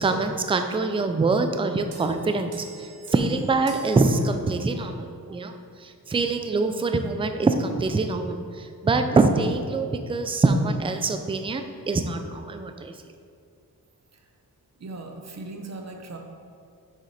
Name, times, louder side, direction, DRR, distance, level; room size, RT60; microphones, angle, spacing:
voice 1, 0.0-13.0, right 3 dB, 15° right, 7 dB, 0.3 m, -24 dB
sound 1, 1.9-4.9, right 3 dB, 80° right, 1.0 m, -44 dB
voice 2, 14.8-16.2, right 2 dB, 45° right, 3 dB, 0.7 m, -38 dB
6.4 x 5.0 x 4.2 m, 2.4 s
wide cardioid pair, 135°, 38 cm